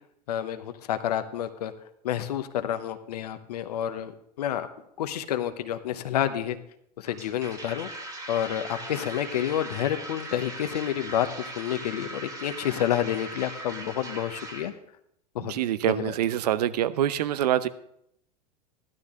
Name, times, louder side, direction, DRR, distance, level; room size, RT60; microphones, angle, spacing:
voice 1, 0.3-1.7 2.0-4.1 4.4-4.7 5.0-6.5 7.0-7.9 8.3-11.3 11.6-14.7 15.4-15.5 15.9-16.1, left 10 dB, 70° left, 9 dB, 0.9 m, -29 dB
sound 1, 7.1-14.7, right 2 dB, 15° right, 2.4 m, -39 dB
voice 2, 15.4-17.7, right 12 dB, 70° right, 14 dB, 0.8 m, -25 dB
14.5 x 12.0 x 3.7 m, 0.74 s
hypercardioid pair, 95°, 21 cm